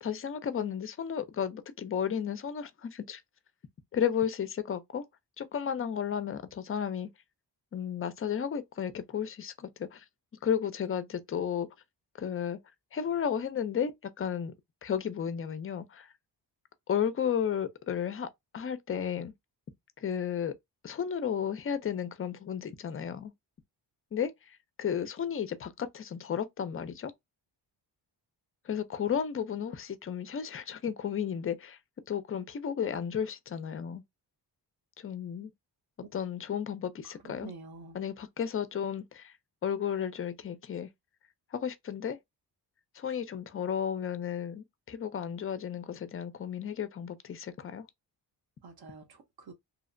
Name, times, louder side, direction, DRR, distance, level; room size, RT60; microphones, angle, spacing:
voice 1, 0.0-3.2 3.9-5.1 5.4-7.1 7.7-10.0 10.4-11.7 12.2-12.6 12.9-14.5 14.8-16.1 16.9-19.3 20.0-20.5 20.8-23.3 24.1-27.1 28.7-31.8 32.1-34.0 35.0-35.5 36.1-37.5 37.9-39.3 39.6-40.9 41.5-42.2 43.0-47.9, left 8 dB, 30° left, 0.4 m, -33 dB
voice 2, 37.0-38.0 48.6-49.5, right 4 dB, 55° right, 0.8 m, -48 dB
2.8 x 2.0 x 2.4 m
cardioid pair, 85°, 44 cm